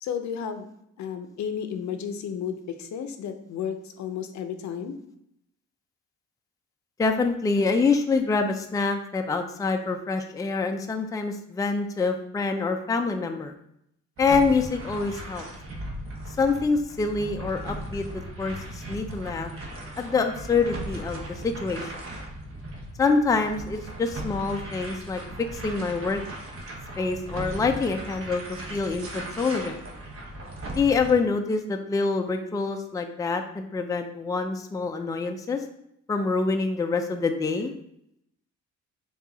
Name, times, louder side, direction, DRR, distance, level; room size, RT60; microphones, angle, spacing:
voice 1, 0.0-0.7 1.0-5.0, left 7 dB, 70° left, 8 dB, 0.6 m, -33 dB
voice 2, 7.0-13.5 14.2-15.4 16.4-19.5 20.0-21.9 23.0-25.2 25.5-26.2 27.0-29.8 30.7-35.6 36.1-37.7, left 4 dB, 10° left, 5 dB, 0.4 m, -26 dB
sound 1, 14.2-31.1, right 1 dB, 45° right, 1.0 m, -38 dB
4.6 x 2.4 x 3.9 m, 0.76 s
cardioid pair, 90°, 30 cm